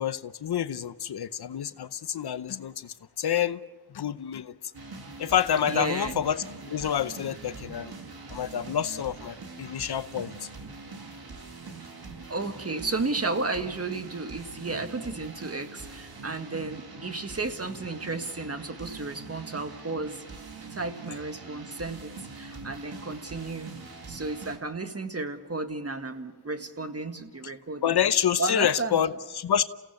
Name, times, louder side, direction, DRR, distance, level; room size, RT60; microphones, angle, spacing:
voice 1, 0.0-3.6 3.9-4.5 5.2-7.9 8.3-10.5 27.8-29.6, left 9 dB, 70° left, 0.8 m, -28 dB
sound 1, 4.7-24.6, right 4 dB, 60° right, 2.5 m, -43 dB
voice 2, 5.7-6.2 12.3-20.2 20.7-23.7 24.1-28.0 28.4-29.0, right 3 dB, 35° right, 1.8 m, -33 dB
28.5 x 16.5 x 7.1 m
cardioid pair, 60°, 41 cm